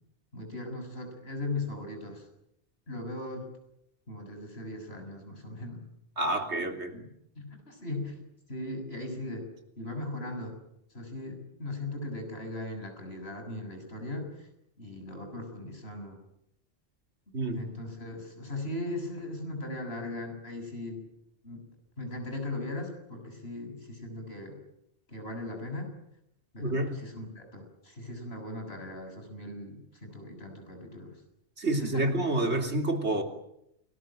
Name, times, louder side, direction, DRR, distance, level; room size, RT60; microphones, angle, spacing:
voice 1, 0.3-2.3 2.9-3.5 4.1-5.8 6.9-7.1 7.4-9.5 9.8-10.6 10.9-14.5 14.8-16.2 17.5-21.0 21.4-21.6 22.0-24.6 25.1-25.9 26.5-31.1 31.8-32.0, left 2 dB, 65° left, 4 dB, 7.4 m, -38 dB
voice 2, 6.2-6.9 17.3-17.7 26.6-27.0 31.6-33.2, right 2 dB, 85° right, 5 dB, 3.6 m, -28 dB
29.0 x 20.5 x 9.0 m, 0.79 s
omnidirectional pair, 1.1 m